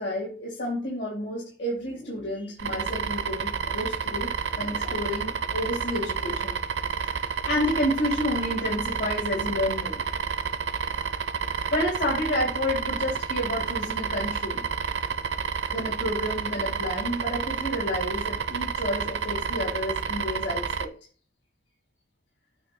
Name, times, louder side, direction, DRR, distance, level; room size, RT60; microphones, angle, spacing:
voice 1, 0.0-6.5 6.9-10.0 11.7-14.7 15.7-20.9, left 1 dB, 75° left, -5 dB, 3.4 m, -30 dB
sound 1, 2.6-20.9, right 6 dB, 85° right, 0.6 m, -30 dB
9.0 x 3.0 x 6.2 m, 0.40 s
head